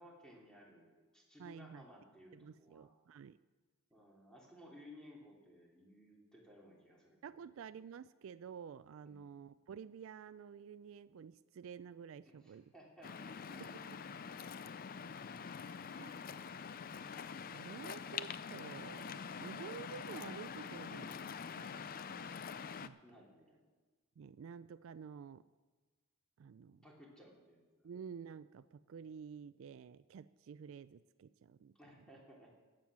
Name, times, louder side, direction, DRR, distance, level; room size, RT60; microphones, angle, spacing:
voice 1, 0.0-2.9 3.9-7.2 9.0-9.4 12.2-13.9 23.0-23.6 26.8-27.9 31.7-32.5, left 1 dB, 5° left, -3 dB, 2.8 m, -59 dB
voice 2, 1.4-1.8 2.3-3.4 7.2-12.7 13.6-14.2 16.0-16.5 17.5-21.8 22.1-23.0 24.2-25.5 26.4-26.8 27.8-31.7, right 7 dB, 65° right, 15 dB, 0.3 m, -51 dB
Waves surf, 13.0-22.9, left 6 dB, 45° left, 0.4 m, -45 dB
15.0 x 8.9 x 6.0 m, 1.3 s
head